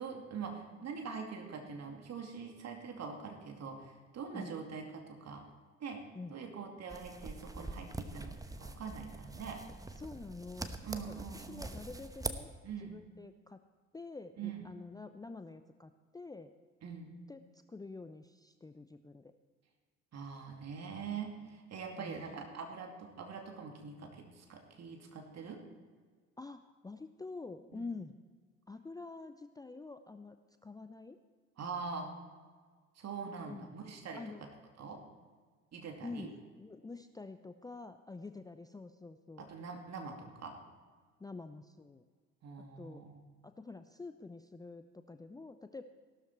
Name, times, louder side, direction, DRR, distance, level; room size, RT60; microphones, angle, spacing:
voice 1, 0.0-5.4 5.8-6.0 6.3-9.6 10.8-11.8 12.6-13.0 14.4-14.7 16.8-17.1 20.1-25.7 27.7-27.9 31.6-32.1 33.0-34.5 34.8-35.0 35.7-36.3 39.4-40.6 42.4-43.2, right 5 dB, 40° right, 3 dB, 2.5 m, -44 dB
sound 1, 6.9-12.3, right 2 dB, 10° right, 1.0 m, -44 dB
voice 2, 10.0-10.8 11.1-12.5 12.8-13.6 13.9-16.5 17.3-19.3 22.0-22.3 26.4-28.2 28.7-30.4 30.6-31.2 33.5-33.7 34.1-34.5 36.0-39.5 41.2-42.0 42.6-43.1 43.4-45.8, left 3 dB, 10° left, 9 dB, 0.6 m, -47 dB
16.0 x 12.5 x 4.5 m, 1.5 s
figure-of-eight pair, 55°, 39 cm